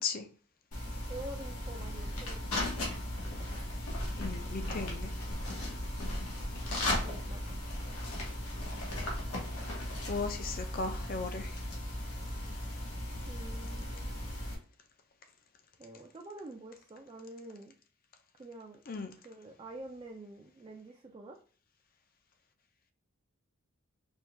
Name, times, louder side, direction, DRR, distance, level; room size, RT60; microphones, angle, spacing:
sound 1, 0.7-14.5, left 1 dB, 85° left, 1.4 m, -37 dB
voice 1, 1.1-2.9 7.0-7.4 13.3-14.1 15.8-17.7 18.4-18.8 19.2-21.4, right 2 dB, 25° right, 0 dB, 0.3 m, -47 dB
voice 2, 4.2-5.1 10.1-11.6 18.9-19.1, left 4 dB, 40° left, 7 dB, 0.5 m, -36 dB
4.4 x 2.3 x 3.3 m, 0.41 s
head